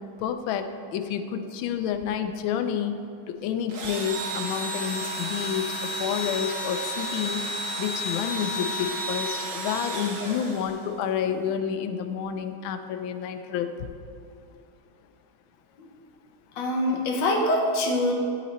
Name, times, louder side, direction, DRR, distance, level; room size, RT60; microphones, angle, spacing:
voice 1, 0.2-3.0 3.3-7.5 7.8-13.7, left 8 dB, 90° left, 8 dB, 1.4 m, -29 dB
Engine / Drill, 3.7-11.0, equal, 50° right, 1.1 m, -32 dB
voice 2, 16.6-18.1, left 1 dB, 65° left, -1 dB, 1.6 m, -24 dB
12.0 x 4.1 x 4.1 m, 2.5 s
omnidirectional pair, 2.1 m